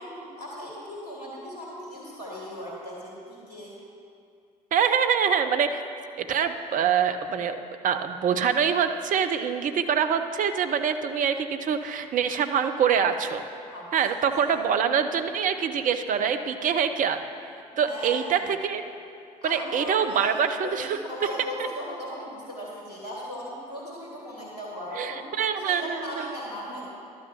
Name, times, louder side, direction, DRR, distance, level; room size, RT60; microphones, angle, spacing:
voice 1, 0.0-3.8 13.7-13.9 14.5-14.6 17.7-18.5 19.4-25.3 25.6-26.8, equal, 80° left, -5 dB, 2.5 m, -37 dB
voice 2, 4.7-5.8 6.2-13.4 13.9-17.2 17.8-18.8 19.4-21.0 24.9-26.3, right 7 dB, 40° right, 8 dB, 0.7 m, -25 dB
11.5 x 6.3 x 7.1 m, 2.4 s
figure-of-eight pair, 50°, 20 cm